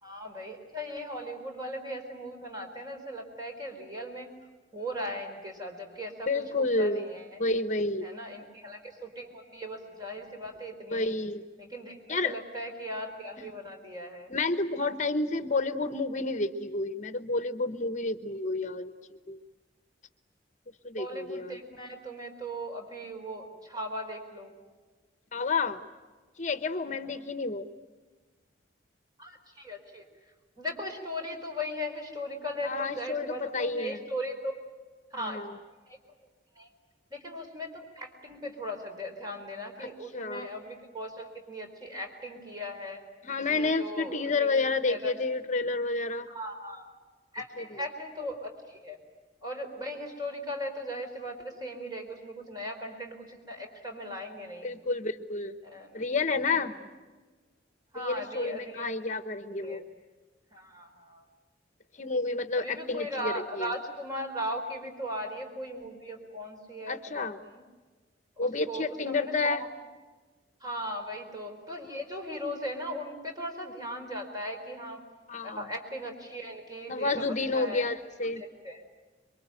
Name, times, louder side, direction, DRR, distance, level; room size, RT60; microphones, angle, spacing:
voice 1, 0.0-4.3 4.7-6.3 6.6-7.4 8.0-11.1 11.6-14.3 21.0-24.5 26.9-27.3 29.2-30.0 30.6-34.6 35.1-35.5 35.9-36.0 36.6-36.7 37.1-43.0 43.5-45.1 46.3-46.9 47.3-49.0 49.4-54.7 55.6-56.0 56.5-56.7 57.9-58.9 59.5-59.8 60.5-61.2 62.6-67.6 68.4-69.7 70.6-75.0 75.4-77.8 78.4-78.8, equal, 20° right, 3 dB, 4.5 m, -38 dB
voice 2, 6.3-7.0 7.4-8.1 10.9-11.4 12.1-12.3 13.4-13.5 14.3-18.9 19.3-19.4 20.8-21.6 25.3-25.8 26.4-27.7 32.6-34.0 35.1-35.6 39.8-40.5 43.2-46.3 47.6-47.8 54.6-55.5 55.9-56.7 57.9-59.8 62.0-63.7 66.9-67.4 68.4-69.6 75.3-75.6 76.9-78.4, left 3 dB, 40° left, 10 dB, 1.1 m, -30 dB
27.5 x 23.5 x 9.1 m, 1.4 s
head